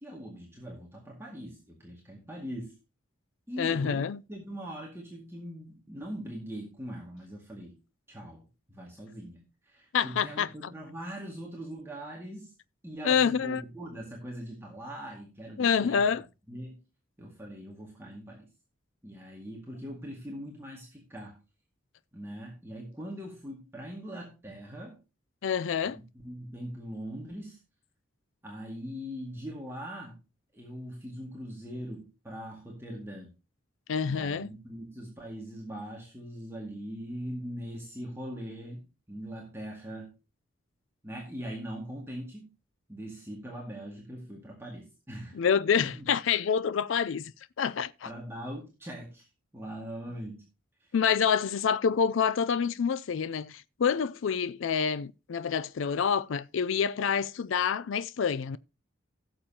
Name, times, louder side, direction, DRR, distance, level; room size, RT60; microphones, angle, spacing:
voice 1, 0.0-2.7 3.5-7.7 8.1-8.4 8.7-12.5 12.8-16.0 16.5-16.8 17.2-18.5 19.0-21.4 22.1-25.0 26.2-27.6 28.4-30.2 30.5-33.3 34.1-40.1 41.0-42.5 42.9-45.4 45.9-46.1 48.1-49.3 49.5-50.4 50.8-50.9, equal, 10° right, 2.0 m, -41 dB
voice 2, 3.6-4.2 9.9-10.5 13.0-13.6 15.6-16.2 25.4-26.0 33.9-34.5 45.3-47.3 47.6-48.1 50.9-58.6, left 7 dB, 70° left, 0.4 m, -27 dB
16.5 x 7.0 x 2.8 m
head